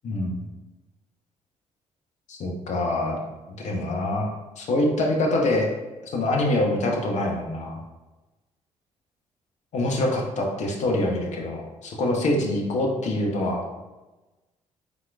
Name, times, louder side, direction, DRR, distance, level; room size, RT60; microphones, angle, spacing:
voice 1, 0.0-0.4 2.3-3.2 3.6-4.3 4.6-5.7 6.0-7.8 9.7-13.6, left 1 dB, 45° left, 0 dB, 0.8 m, -25 dB
4.9 x 3.7 x 2.2 m, 1.1 s
figure-of-eight pair, 45°, 16 cm